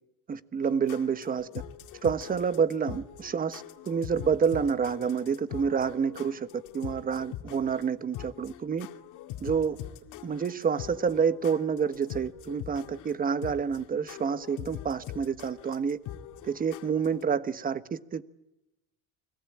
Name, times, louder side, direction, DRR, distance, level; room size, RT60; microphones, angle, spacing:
voice 1, 0.3-1.5 2.0-8.9 9.4-9.8 10.2-16.0 16.4-18.2, right 6 dB, 25° right, 1.2 m, -28 dB
sound 1, 0.6-17.2, left 11 dB, 65° left, 2.4 m, -43 dB
29.5 x 22.0 x 8.7 m
cardioid pair, 130°, 33 cm